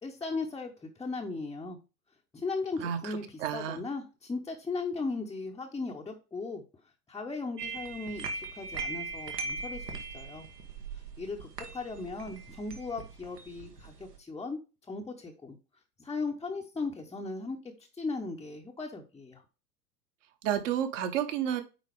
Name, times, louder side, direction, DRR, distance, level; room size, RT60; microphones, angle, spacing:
voice 1, 0.0-1.8 2.3-6.6 7.1-10.5 11.2-14.6 14.9-15.6 16.0-17.6 17.9-19.4, left 3 dB, 10° left, -1 dB, 0.7 m, -37 dB
voice 2, 2.8-3.8 20.4-21.6, right 9 dB, 50° right, 9 dB, 1.2 m, -31 dB
sound 1, 7.6-14.2, right 3 dB, 80° right, 1.3 m, -40 dB
9.4 x 3.8 x 3.5 m, 0.31 s
figure-of-eight pair, 85°, 47 cm